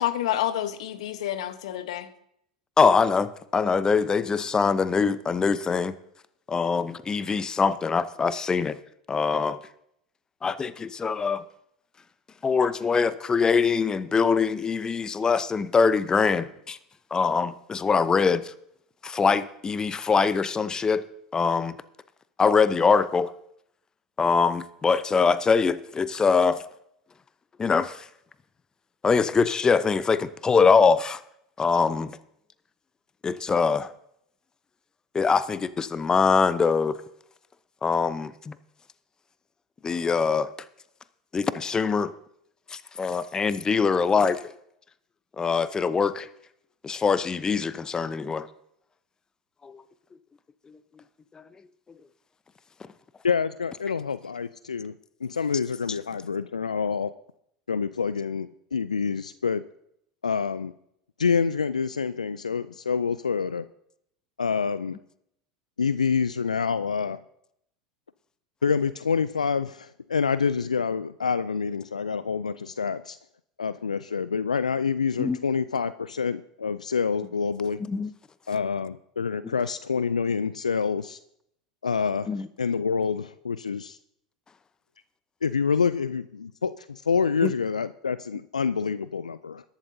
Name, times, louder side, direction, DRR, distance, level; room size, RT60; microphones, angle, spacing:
voice 1, 0.0-2.1, left 12 dB, 65° left, 12 dB, 1.1 m, -28 dB
voice 2, 2.8-5.9 6.5-8.8 9.1-9.6 10.4-11.4 12.4-16.8 17.1-18.5 19.0-21.0 21.3-21.7 22.4-23.3 24.2-26.6 27.6-28.1 29.0-31.2 31.6-32.1 33.2-33.9 35.1-37.0 37.8-38.6 39.8-40.5 41.3-42.1 42.7-44.4 45.4-46.3 46.8-48.5 49.6-49.8 50.7-50.8 51.3-51.4 75.2-75.4 77.9-78.1 79.4-79.5 82.3-82.5 87.4-87.5, left 5 dB, 20° left, 15 dB, 0.7 m, -23 dB
voice 3, 53.2-54.9 55.2-57.1 57.7-59.6 60.2-60.7 61.2-63.7 64.4-65.0 65.8-67.2 68.6-73.2 73.6-77.8 78.5-81.2 81.8-82.3 82.6-84.0 85.4-89.6, left 5 dB, 85° left, 15 dB, 0.4 m, -27 dB
21.5 x 11.5 x 2.7 m, 0.73 s
figure-of-eight pair, 80°, 4 cm